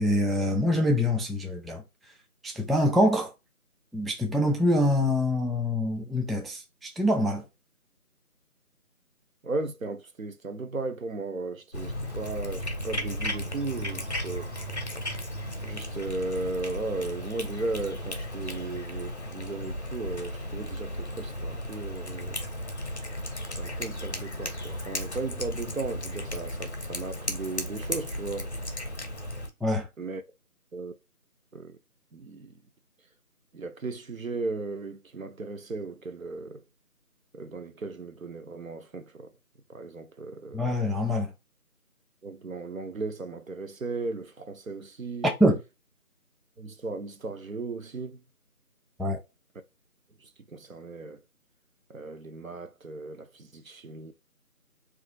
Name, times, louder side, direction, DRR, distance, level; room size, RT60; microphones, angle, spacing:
voice 1, 0.0-1.8 2.4-3.3 3.9-7.4 29.6-29.9 40.5-41.3 45.4-45.6 49.0-49.2, left 1 dB, ahead, 0.4 m, -25 dB
voice 2, 9.4-14.5 15.6-22.4 23.6-28.5 30.0-30.2 30.7-30.9 31.5-31.8 32.1-32.5 33.5-36.6 37.3-39.3 39.7-40.7 42.2-45.3 46.6-48.2 50.2-51.2 51.9-54.1, right 3 dB, 65° right, 0.5 m, -36 dB
Cat, 11.7-29.5, left 1 dB, 50° left, 0.6 m, -35 dB
2.9 x 2.4 x 2.6 m
figure-of-eight pair, 180°, 45 cm